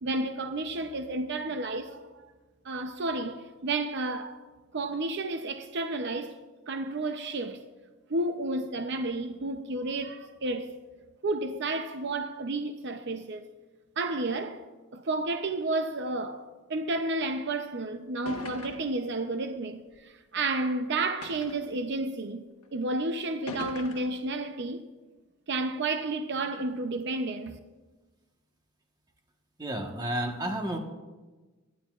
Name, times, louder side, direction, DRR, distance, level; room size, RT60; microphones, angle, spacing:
voice 1, 0.0-2.0 2.6-4.4 4.7-6.3 6.7-7.6 8.1-10.8 11.2-13.5 14.0-14.6 14.9-16.4 16.7-24.8 25.5-27.6, right 2 dB, 50° right, 0.6 m, -31 dB
sound 1, 17.6-17.7 18.3-19.0 19.9-20.0 21.2-21.7 22.6-22.7 23.5-24.2, left 3 dB, 75° left, 1.2 m, -41 dB
voice 2, 29.6-30.8, right 1 dB, 20° right, 1.2 m, -31 dB
18.5 x 12.5 x 2.4 m
head